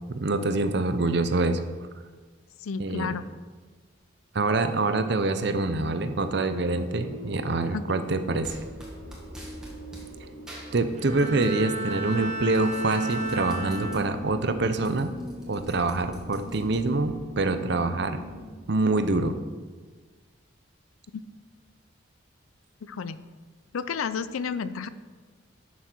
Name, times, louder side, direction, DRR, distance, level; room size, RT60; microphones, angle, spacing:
voice 1, 0.1-1.6 2.8-3.1 4.3-8.6 10.7-15.1 15.5-18.2 18.7-19.4, right 3 dB, 55° right, 9 dB, 0.6 m, -25 dB
voice 2, 2.6-3.2 7.7-7.8 22.9-23.2 23.7-24.9, left 6 dB, 85° left, 14 dB, 0.5 m, -31 dB
sound 1, 6.0-18.5, equal, 85° right, 1.6 m, -43 dB
sound 2, 8.4-10.1 10.5-11.6 11.9-14.0 14.4-14.5 14.7-17.2, right 1 dB, 5° right, 1.6 m, -47 dB
Bowed string instrument, 10.9-14.5 15.0-15.4, right 2 dB, 35° right, 1.2 m, -32 dB
11.5 x 6.3 x 4.5 m, 1.4 s
head